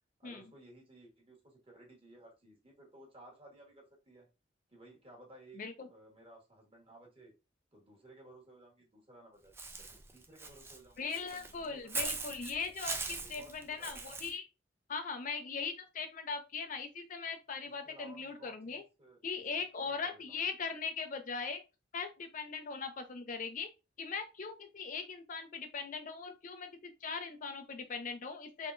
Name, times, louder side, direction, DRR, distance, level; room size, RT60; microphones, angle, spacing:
voice 1, 0.2-4.3 4.7-5.6 5.9-7.3 7.7-12.3 13.2-14.2 17.6-19.2 19.8-20.4, right 1 dB, 30° right, 0 dB, 1.3 m, -57 dB
voice 2, 5.5-5.9 11.0-14.5 14.9-18.8 19.2-21.6 21.9-23.7 24.0-28.7, left 5 dB, 45° left, 7 dB, 0.5 m, -40 dB
Walk footsteps / Bird, 9.6-14.3, right 3 dB, 15° right, 0.4 m, -41 dB
3.6 x 3.4 x 2.5 m, 0.28 s
head